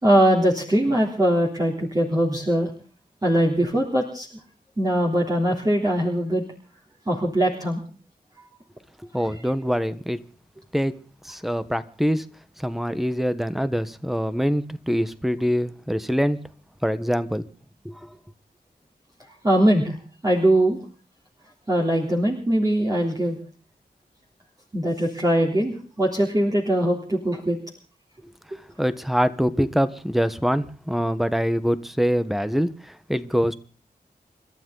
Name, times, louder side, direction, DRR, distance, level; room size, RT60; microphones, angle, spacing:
voice 1, 0.0-2.7 3.2-4.3 4.8-6.4 7.1-7.8 19.4-20.0 20.2-20.8 21.7-23.4 24.7-27.6, right 1 dB, 20° right, 3.4 m, -21 dB
voice 2, 9.1-10.2 10.7-11.0 11.2-12.3 12.6-16.4 16.8-17.4 17.8-18.1 28.8-33.5, equal, ahead, 1.2 m, -24 dB
29.5 x 12.5 x 4.0 m
wide cardioid pair, 80°, 17 cm